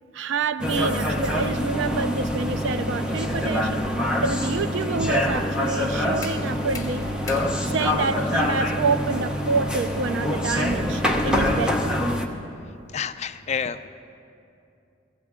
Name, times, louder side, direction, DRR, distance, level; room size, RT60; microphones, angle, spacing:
voice 1, 0.1-3.9 4.2-7.0 7.6-12.0, right 4 dB, 70° right, 0.4 m, -27 dB
sound 1, 0.6-12.3, left 1 dB, 5° right, 0.7 m, -25 dB
sound 2, 6.2-11.3, left 4 dB, 20° left, 1.0 m, -43 dB
voice 2, 12.9-13.9, left 7 dB, 35° left, 0.4 m, -29 dB
16.0 x 15.5 x 3.6 m
head